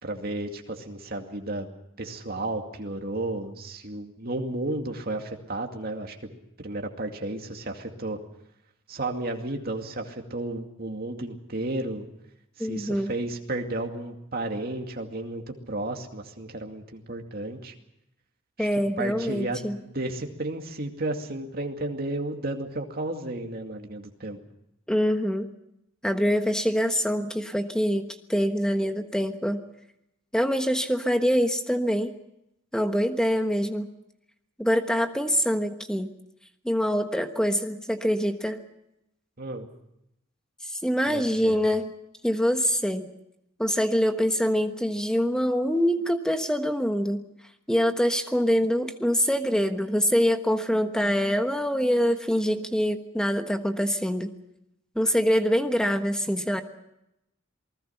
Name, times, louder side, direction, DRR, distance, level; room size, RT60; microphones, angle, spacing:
voice 1, 0.0-1.7 2.0-6.3 6.6-8.2 8.9-12.1 12.6-17.7 18.6-18.7 19.0-24.4 39.4-39.7 41.1-41.6, right 2 dB, 45° right, 3 dB, 2.4 m, -33 dB
voice 2, 12.6-13.1 18.6-19.8 24.9-25.5 26.0-29.6 30.3-32.1 32.7-33.9 34.6-36.1 36.6-38.6 40.7-41.9 42.2-43.1 43.6-47.2 47.7-54.3 54.9-56.6, equal, 5° left, 7 dB, 1.3 m, -25 dB
27.5 x 20.0 x 5.8 m, 0.83 s
head